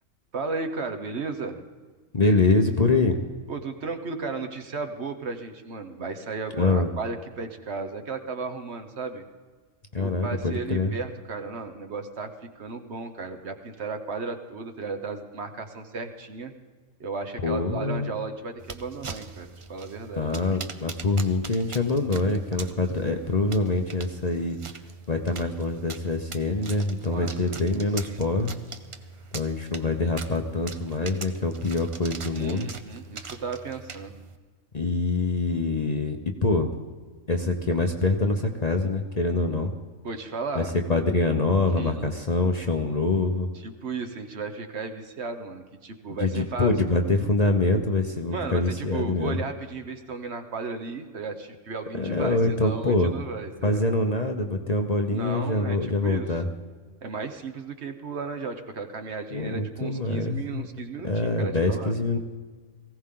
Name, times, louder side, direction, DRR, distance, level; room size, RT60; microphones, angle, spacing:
voice 1, 0.3-1.6 3.5-9.2 10.0-16.5 17.0-20.3 27.0-27.6 28.0-28.2 32.3-34.1 40.0-40.7 41.8-42.0 43.5-46.7 48.3-53.9 55.1-56.3 57.0-61.9, right 4 dB, 55° right, 7 dB, 1.2 m, -35 dB
voice 2, 2.1-3.2 6.6-6.9 9.9-10.9 17.4-18.1 20.1-24.6 25.1-28.5 29.3-32.7 34.7-36.8 37.3-39.7 40.5-43.5 46.2-49.4 51.9-53.2 53.6-56.5 59.3-60.7 61.0-62.2, left 2 dB, 35° left, 4 dB, 0.8 m, -25 dB
sound 1, 18.6-34.4, right 4 dB, 40° right, 0.5 m, -42 dB
19.0 x 16.0 x 3.8 m, 1.4 s
omnidirectional pair, 1.4 m